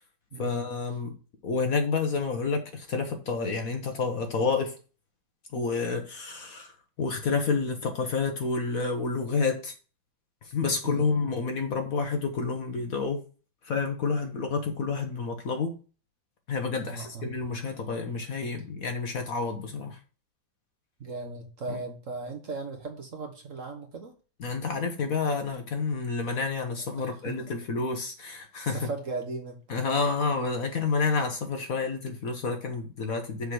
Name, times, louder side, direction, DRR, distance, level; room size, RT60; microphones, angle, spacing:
voice 1, 0.4-1.2 1.4-4.8 5.5-6.7 7.0-9.7 10.4-13.2 13.6-15.8 16.5-20.0 21.7-21.8 24.4-28.9 29.7-33.5, left 4 dB, 55° left, 5 dB, 1.3 m, -29 dB
voice 2, 16.8-17.3 21.0-24.1 26.9-27.3 28.6-29.6, right 3 dB, 45° right, 3 dB, 1.3 m, -37 dB
6.7 x 3.7 x 6.2 m, 0.36 s
omnidirectional pair, 2.1 m